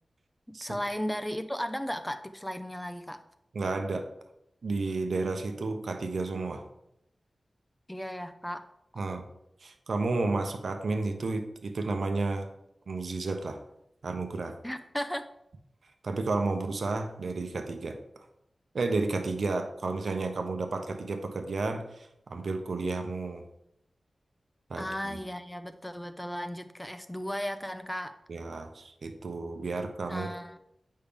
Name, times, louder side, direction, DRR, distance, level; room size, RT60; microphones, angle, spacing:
voice 1, 0.5-3.2 7.9-8.6 14.6-15.3 24.8-28.2 30.1-30.6, equal, 10° left, 9 dB, 0.7 m, -35 dB
voice 2, 3.5-4.1 4.6-6.6 9.0-9.3 9.6-12.5 12.9-13.6 14.0-14.5 16.0-18.0 18.7-23.4 24.7-25.2 28.3-30.3, right 3 dB, 75° right, 6 dB, 0.9 m, -32 dB
8.6 x 5.5 x 3.6 m, 0.80 s
cardioid pair, 55°, 0 cm